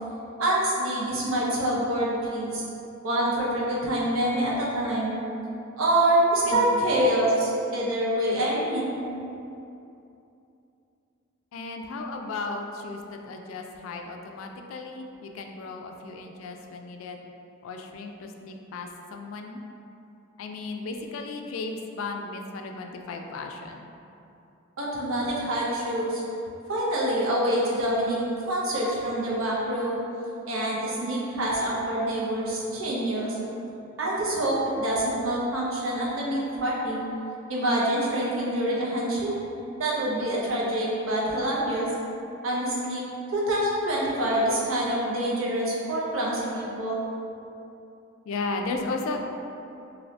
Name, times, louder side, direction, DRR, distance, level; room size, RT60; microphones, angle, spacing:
voice 1, 0.4-2.6 3.0-5.2 5.7-9.0 24.8-26.2 26.7-30.0 30.5-33.3 34.0-37.0 37.5-39.3 39.8-41.9 42.4-43.0 43.3-47.0, right 1 dB, 85° right, -5 dB, 0.7 m, -26 dB
voice 2, 11.5-17.2 17.6-19.6 20.4-23.9 48.3-49.2, left 3 dB, 80° left, 3 dB, 0.3 m, -35 dB
2.7 x 2.7 x 3.1 m, 2.8 s
head